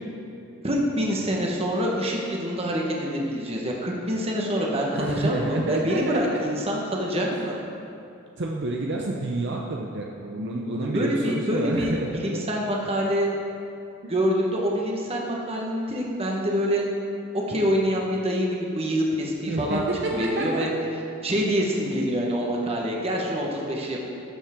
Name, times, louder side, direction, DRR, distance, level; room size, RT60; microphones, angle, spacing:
voice 1, 0.6-7.6 10.9-13.3 14.1-16.8 17.3-18.5 18.7-20.7 21.2-24.0, equal, 30° right, -2 dB, 1.3 m, -26 dB
voice 2, 4.9-6.4 8.4-12.4 14.0-14.1 19.5-20.7, right 2 dB, 55° right, -1 dB, 0.7 m, -28 dB
12.5 x 7.3 x 3.7 m, 2.7 s
head